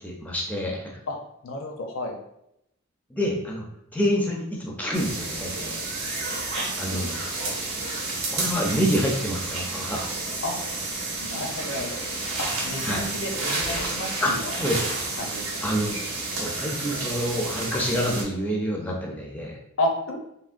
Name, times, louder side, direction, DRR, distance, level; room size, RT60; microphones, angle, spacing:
voice 1, 0.0-1.0 3.1-3.6 3.9-5.7 6.8-7.2 8.3-10.1 12.8-13.1 14.2-14.8 15.6-19.6, equal, 5° left, -2 dB, 0.4 m, -27 dB
voice 2, 1.4-2.2 6.9-7.1 7.4-7.6 10.4-10.6 11.2-12.0 12.4-14.5 15.2-15.7 19.8-20.2, left 1 dB, 65° left, 2 dB, 0.5 m, -31 dB
sound 1, 4.9-18.2, right 3 dB, 85° right, 0.8 m, -30 dB
3.4 x 2.1 x 2.5 m, 0.78 s
head